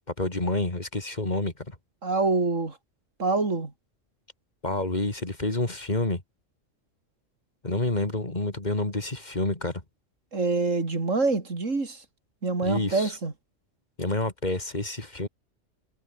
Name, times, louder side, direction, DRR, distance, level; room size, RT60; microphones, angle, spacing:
voice 1, 0.2-1.7 4.6-6.2 7.6-9.7 12.6-13.1 14.0-15.3, left 2 dB, 35° left, 3.1 m, -28 dB
voice 2, 2.0-2.8 3.2-3.7 10.3-12.0 12.4-13.3, right 3 dB, 90° right, 3.6 m, -26 dB
omnidirectional pair, 1.3 m